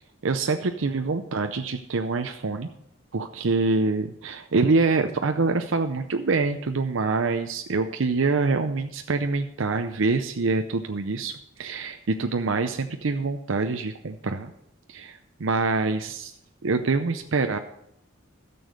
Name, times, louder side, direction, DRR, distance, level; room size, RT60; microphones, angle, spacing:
voice 1, 0.2-2.7 3.1-14.5 14.9-16.3 16.6-17.6, right 3 dB, 70° right, 6 dB, 0.6 m, -25 dB
13.0 x 7.0 x 6.5 m, 0.77 s
head